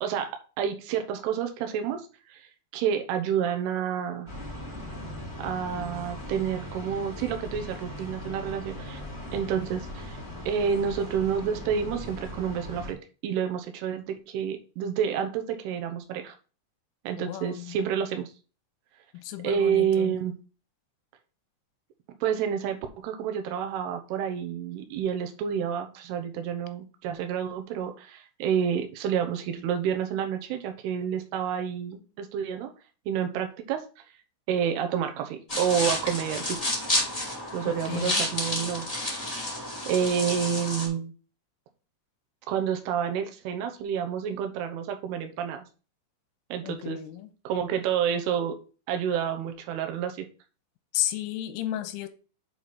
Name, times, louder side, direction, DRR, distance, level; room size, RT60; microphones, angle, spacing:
voice 1, 0.0-2.5 2.7-4.3 5.4-9.0 9.3-10.2 10.5-13.0 13.2-16.3 17.0-18.3 19.4-20.3 22.2-32.7 33.1-33.8 34.5-36.8 37.5-38.9 39.9-41.1 42.5-45.6 46.5-47.0 47.4-48.6 48.9-50.3, right 8 dB, 80° right, 6 dB, 2.4 m, -29 dB
sound 1, 4.3-12.9, left 1 dB, 40° right, 0.4 m, -39 dB
voice 2, 17.3-17.8 19.1-20.2 37.6-38.2 46.6-47.3 50.9-52.1, left 13 dB, 80° left, 9 dB, 3.2 m, -33 dB
sound 2, 35.5-40.9, left 1 dB, 20° left, 1.0 m, -30 dB
7.7 x 4.2 x 4.7 m, 0.36 s
omnidirectional pair, 5.8 m